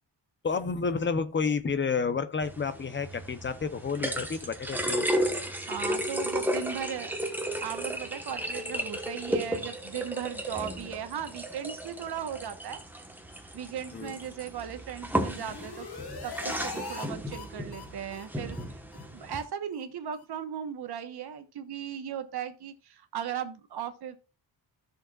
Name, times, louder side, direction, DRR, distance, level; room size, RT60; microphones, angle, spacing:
voice 1, 0.4-5.1 13.9-14.2, left 5 dB, 25° left, 0.7 m, -30 dB
sound 1, 2.4-19.4, equal, 5° right, 1.1 m, -34 dB
voice 2, 5.7-7.2 7.6-12.8 13.5-15.9 16.2-18.6 19.1-24.2, right 8 dB, 65° right, 1.1 m, -37 dB
sound 2, 15.0-17.1 17.3-17.4 17.7-17.8 18.1-18.2 18.5-18.6 18.9-19.0 19.3-19.4 19.7-19.8 20.1-20.2, left 5 dB, 60° left, 2.1 m, -41 dB
13.5 x 6.5 x 2.3 m
wide cardioid pair, 175°, 43 cm